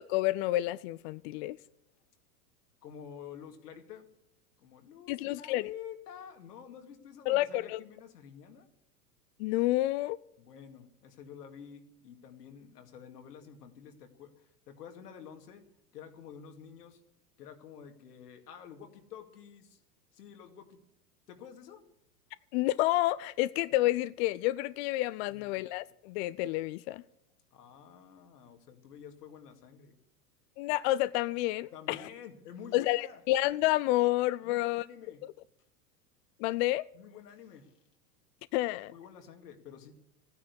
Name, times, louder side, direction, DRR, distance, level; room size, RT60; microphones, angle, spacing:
voice 1, 0.0-1.6 5.1-5.6 7.3-7.8 9.4-10.2 22.5-27.0 30.6-32.1 32.7-34.9 36.4-36.8 38.5-38.9, left 17 dB, 45° left, 0.5 m, -29 dB
voice 2, 2.8-4.1 4.6-8.7 10.4-15.6 15.9-17.0 17.4-19.8 20.1-20.8 21.3-21.8 25.3-25.6 27.5-30.0 31.7-33.2 34.4-35.2 36.9-37.7 38.9-40.1, left 8 dB, 80° left, 2.4 m, -49 dB
15.0 x 9.7 x 8.2 m
hypercardioid pair, 110°, 47 cm